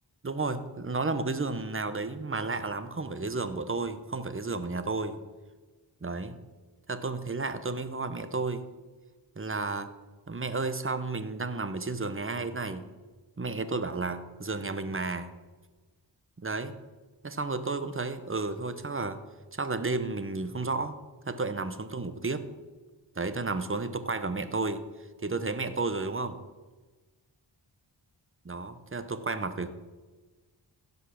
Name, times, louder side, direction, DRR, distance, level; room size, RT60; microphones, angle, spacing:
voice 1, 0.2-5.2 6.0-6.4 6.9-8.6 9.4-9.9 10.3-12.9 13.4-15.3 16.4-16.7 17.2-19.2 19.5-21.0 21.3-22.4 23.2-24.8 25.2-26.4 28.5-29.7, right 3 dB, 30° right, 11 dB, 0.9 m, -32 dB
16.0 x 5.5 x 6.4 m, 1.3 s
wide cardioid pair, 65°, 45 cm